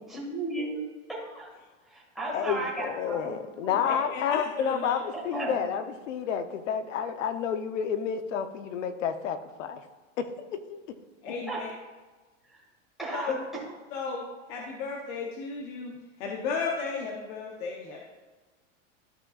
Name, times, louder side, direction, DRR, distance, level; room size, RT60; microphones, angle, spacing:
voice 1, 0.1-1.5 1.9-3.8 5.1-5.6 11.2-11.6 12.5-12.6 13.0-13.3, right 2 dB, ahead, -6 dB, 1.9 m, -35 dB
voice 2, 2.3-5.0 5.2-9.8 10.2-10.8, left 8 dB, 75° left, 9 dB, 0.9 m, -30 dB
voice 3, 3.8-4.9 11.2-11.7 13.1-13.4 13.9-15.9 16.2-18.0, left 4 dB, 45° left, 0 dB, 0.9 m, -34 dB
13.0 x 5.2 x 2.4 m, 1.3 s
supercardioid pair, 155°, 37 cm